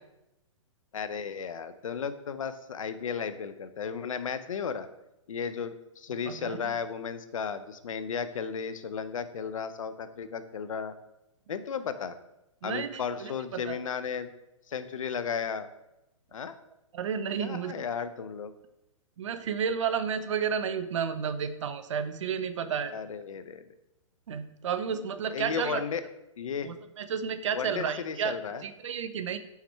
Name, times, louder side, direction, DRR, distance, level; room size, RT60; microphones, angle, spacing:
voice 1, 0.9-4.9 5.3-11.0 11.5-12.2 12.6-14.3 14.7-15.7 16.3-16.5 17.4-18.5 22.9-23.6 25.3-26.0 26.4-26.7 27.5-28.6, left 6 dB, 75° left, 12 dB, 0.6 m, -34 dB
voice 2, 6.3-6.6 12.6-13.8 16.9-17.8 19.2-22.9 24.3-25.8 26.6-28.3 28.6-29.4, right 7 dB, 65° right, 11 dB, 0.6 m, -32 dB
5.8 x 4.3 x 4.4 m, 0.90 s
hypercardioid pair, 125°, 17 cm